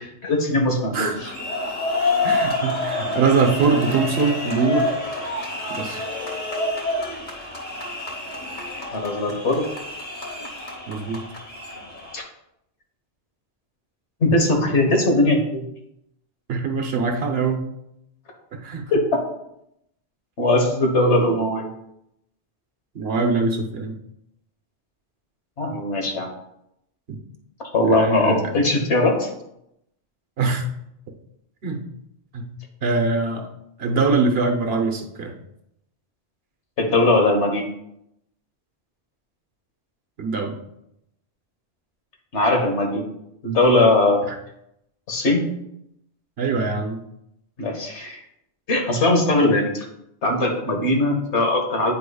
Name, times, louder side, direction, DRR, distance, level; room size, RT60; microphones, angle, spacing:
voice 1, 0.2-1.3 8.9-9.6 12.1-12.2 14.2-15.6 18.9-19.0 20.4-21.7 25.6-26.3 27.7-29.3 36.8-37.7 42.3-43.1 43.4-44.2 45.1-45.4 47.6-48.2 48.7-49.8 50.2-51.9, left 2 dB, 85° left, 2 dB, 1.5 m, -20 dB
voice 2, 0.9-1.3 2.2-4.9 5.7-6.0 10.9-11.2 16.5-17.6 18.5-18.9 22.9-24.0 27.1-27.2 27.9-28.5 30.4-30.7 31.6-31.8 32.3-32.5 32.8-33.5 33.8-35.3 40.2-40.6 44.3-44.4 46.4-47.0, right 4 dB, 65° right, 3 dB, 1.1 m, -23 dB
sound 1, 1.1-12.2, left 2 dB, 45° left, 1.4 m, -28 dB
9.0 x 4.9 x 2.3 m, 0.79 s
omnidirectional pair, 1.1 m